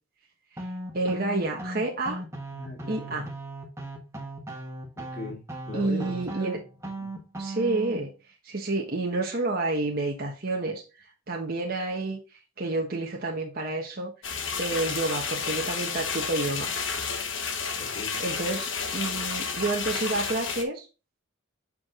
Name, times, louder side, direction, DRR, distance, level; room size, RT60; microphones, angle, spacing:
sound 1, 0.6-8.0, right 1 dB, 15° right, 1.4 m, -37 dB
voice 1, 0.9-2.2 2.9-3.3 5.7-6.6 7.4-8.1 8.4-10.8 11.3-12.2 12.6-14.1 14.6-16.7 18.2-20.9, right 2 dB, 45° right, 0 dB, 1.2 m, -29 dB
voice 2, 2.5-3.3 5.0-6.5 7.0-7.1 17.8-18.2, left 2 dB, 40° left, -6 dB, 2.4 m, -40 dB
sound 2, 14.2-20.6, left 5 dB, 65° left, 1.2 m, -31 dB
7.3 x 4.7 x 3.8 m, 0.31 s
head